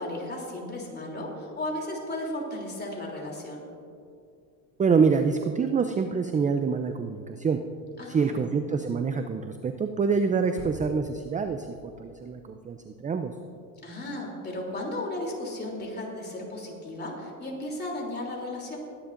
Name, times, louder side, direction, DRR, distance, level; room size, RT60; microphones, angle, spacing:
voice 1, 0.0-3.7 8.0-8.4 13.8-18.8, left 1 dB, 25° left, -1 dB, 3.1 m, -35 dB
voice 2, 4.8-7.6 8.1-13.3, right 5 dB, 20° right, 7 dB, 0.4 m, -26 dB
sound 1, 10.6-13.1, right 3 dB, 45° right, 2.7 m, -46 dB
21.0 x 9.9 x 2.6 m, 2.4 s
supercardioid pair, 95°, 43 cm